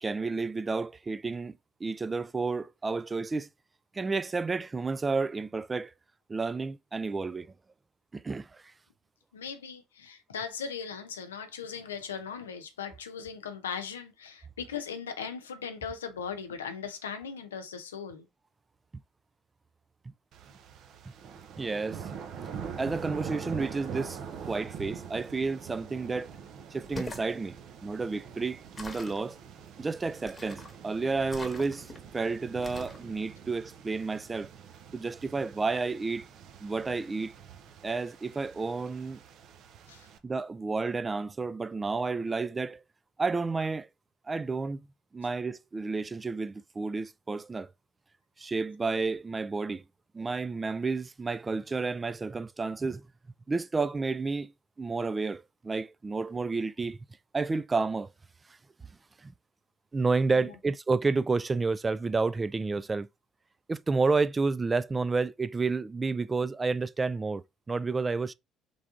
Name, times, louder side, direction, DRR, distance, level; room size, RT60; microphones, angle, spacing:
voice 1, 0.0-3.5 3.9-5.9 6.3-7.5 8.1-8.6 21.6-22.0 22.8-26.3 26.7-29.4 29.8-34.5 34.9-36.3 36.6-37.3 37.8-39.2 40.2-42.8 43.2-43.9 44.3-44.8 45.1-47.7 48.4-49.8 50.1-53.0 53.5-54.5 54.8-57.0 57.3-58.1 59.2-59.3 59.9-63.1 63.7-68.3, right 4 dB, 25° right, 0.3 m, -31 dB
voice 2, 9.3-18.3 39.9-40.1 60.3-60.5, left 6 dB, 90° left, 0.7 m, -38 dB
sound 1, 20.3-40.2, right 7 dB, 60° right, 0.7 m, -44 dB
sound 2, 26.8-27.3 28.8-29.2 30.3-30.8 31.3-32.0 32.6-33.0, left 2 dB, 20° left, 1.2 m, -42 dB
3.6 x 3.4 x 3.7 m
hypercardioid pair, 60°, 0 cm